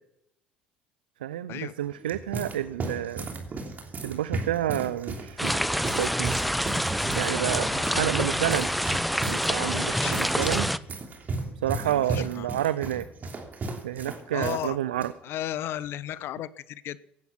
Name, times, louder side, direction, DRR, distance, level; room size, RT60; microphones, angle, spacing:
voice 1, 1.2-3.3 4.0-6.4 7.2-8.7 9.2-10.7 11.6-13.1 13.8-15.1, right 12 dB, 85° right, 15 dB, 0.5 m, -29 dB
sound 1, 1.8-14.7 14.9-15.1 15.8-16.1, right 3 dB, 40° right, 3.2 m, -35 dB
sound 2, 5.4-10.8, equal, ahead, 0.7 m, -27 dB
voice 2, 7.6-8.2 9.4-10.4 11.8-12.5 14.3-14.8 15.2-17.0, left 12 dB, 60° left, 18 dB, 0.8 m, -35 dB
17.0 x 12.0 x 6.0 m, 0.77 s
hypercardioid pair, 60°, 5 cm